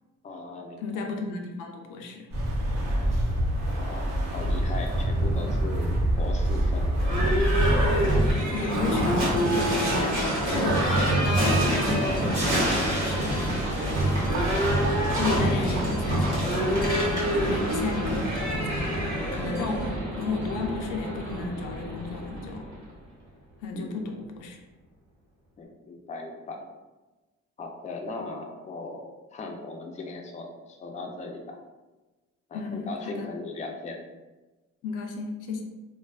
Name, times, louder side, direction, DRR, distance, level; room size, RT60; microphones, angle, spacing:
voice 1, 0.2-0.8 3.6-4.0 4.3-6.9 7.4-7.6 14.8-15.3 23.7-24.1 25.6-26.6 27.6-29.0 29.3-31.6 32.5-34.0, left 3 dB, 25° left, 2 dB, 0.4 m, -38 dB
voice 2, 0.8-2.3 2.9-3.1 8.5-10.1 10.5-14.1 15.2-22.7 23.6-24.6 32.5-33.3 34.8-35.6, left 3 dB, 90° left, 2 dB, 0.5 m, -34 dB
sound 1, 2.3-8.3, right 1 dB, 60° right, 0.7 m, -25 dB
Livestock farm animals working animals / Bell, 7.0-22.8, right 1 dB, 80° right, 1.0 m, -26 dB
Crash cymbal, 12.3-17.4, right 1 dB, 20° right, 0.7 m, -40 dB
2.5 x 2.3 x 2.2 m, 1.2 s
cardioid pair, 90°, 30 cm